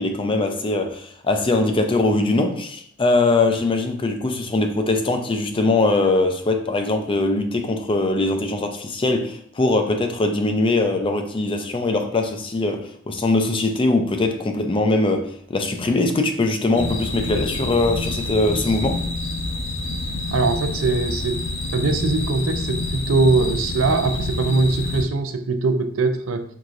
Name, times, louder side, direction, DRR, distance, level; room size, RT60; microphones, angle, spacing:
voice 1, 0.0-19.0, left 2 dB, 25° left, 0.5 m, -21 dB
sound 1, 16.8-25.0, left 2 dB, 70° left, 1.0 m, -27 dB
voice 2, 20.3-21.4 21.7-26.4, right 3 dB, 75° right, 0.5 m, -21 dB
4.7 x 3.8 x 2.5 m
head